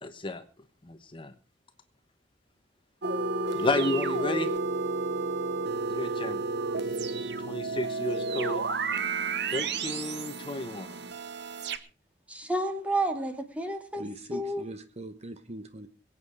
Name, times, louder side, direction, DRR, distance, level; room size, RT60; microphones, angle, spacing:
voice 1, 0.0-0.4 0.8-1.3 3.5-4.5 5.9-6.4 7.5-8.6 9.5-11.0, left 2 dB, 30° left, 9 dB, 1.1 m, -32 dB
sound 1, 3.0-11.8, right 3 dB, 65° right, 1.1 m, -31 dB
voice 2, 12.3-14.6, right 1 dB, 10° right, 6 dB, 2.3 m, -31 dB
voice 3, 14.0-15.9, right 1 dB, 35° right, 10 dB, 1.1 m, -41 dB
22.5 x 8.7 x 4.8 m, 0.35 s
head